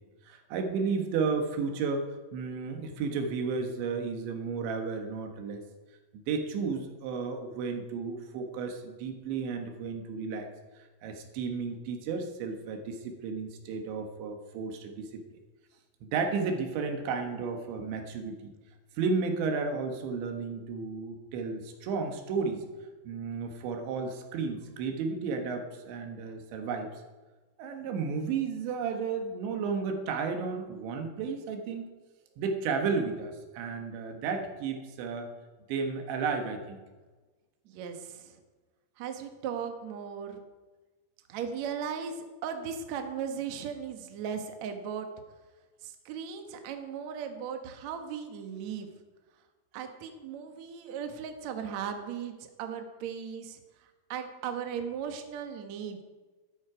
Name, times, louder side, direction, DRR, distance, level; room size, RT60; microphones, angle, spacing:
voice 1, 0.3-5.6 6.1-10.5 10.8-15.2 16.0-18.5 19.0-22.6 23.1-26.9 27.6-31.9 32.4-35.3 35.7-36.8, right 5 dB, 90° right, 4 dB, 3.8 m, -33 dB
voice 2, 37.6-38.4 39.0-40.4 41.3-45.1 45.8-48.9 49.7-53.6 54.1-56.0, right 7 dB, 70° right, 5 dB, 1.7 m, -37 dB
12.5 x 12.5 x 5.0 m, 1.3 s
omnidirectional pair, 5.1 m